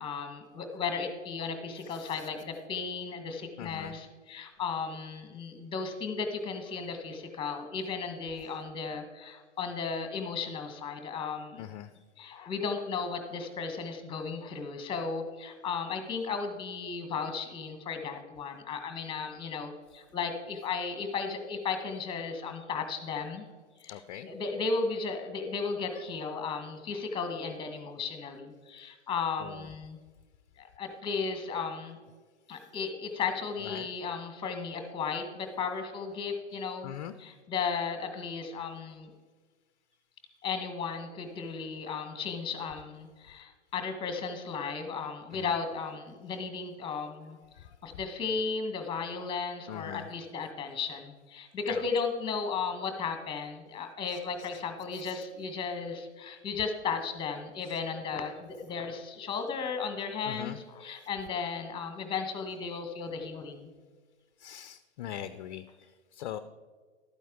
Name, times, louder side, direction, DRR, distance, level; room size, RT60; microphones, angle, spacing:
voice 1, 0.0-11.6 12.2-23.5 23.8-24.0 24.2-30.0 30.6-32.0 32.5-36.9 37.2-39.1 40.4-47.4 47.8-63.7, left 5 dB, 15° left, 6 dB, 1.4 m, -35 dB
voice 2, 1.8-2.3 3.6-4.0 5.3-5.5 6.6-6.9 8.4-8.5 11.6-11.9 16.9-17.0 23.1-23.2 23.9-24.3 25.9-26.0 29.4-29.7 33.0-33.1 33.6-34.1 36.8-37.1 45.3-45.6 46.8-47.0 47.5-47.8 49.7-50.1 51.7-51.9 54.1-54.6 54.9-55.3 57.6-57.8 60.2-60.7 64.4-66.4, left 11 dB, 40° left, 11 dB, 0.5 m, -43 dB
12.0 x 9.2 x 3.8 m, 1.5 s
figure-of-eight pair, 105°, 34 cm